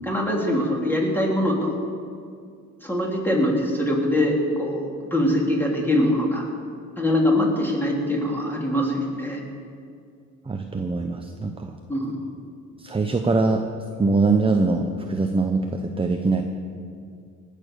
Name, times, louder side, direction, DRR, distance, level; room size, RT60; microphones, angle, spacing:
voice 1, 0.0-1.7 2.8-6.4 7.0-9.4 11.9-12.2, left 1 dB, 5° left, -2 dB, 3.1 m, -23 dB
voice 2, 10.5-11.7 12.8-13.6 14.0-16.4, right 3 dB, 20° right, 5 dB, 0.8 m, -22 dB
19.0 x 6.8 x 6.8 m, 2.2 s
cardioid pair, 90°, 30 cm